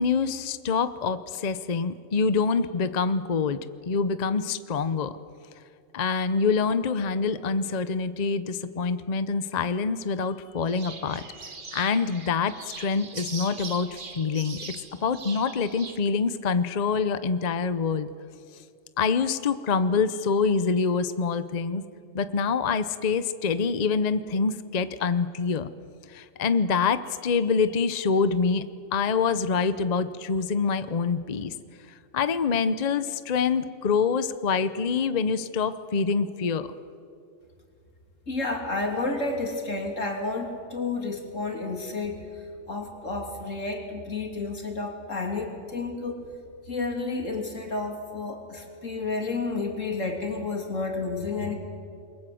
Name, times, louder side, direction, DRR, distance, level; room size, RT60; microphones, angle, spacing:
voice 1, 0.0-3.6 3.9-5.2 5.9-11.2 11.7-14.8 15.0-18.1 19.0-21.8 22.1-25.7 26.1-28.6 28.9-31.5 32.1-36.7, left 5 dB, 40° left, 12 dB, 0.8 m, -26 dB
sound 1, 10.7-16.0, right 4 dB, 45° right, 1.5 m, -41 dB
voice 2, 38.3-46.2 46.7-51.6, left 3 dB, 85° left, 2 dB, 3.4 m, -31 dB
28.0 x 22.5 x 7.7 m, 2.4 s
omnidirectional pair, 1.3 m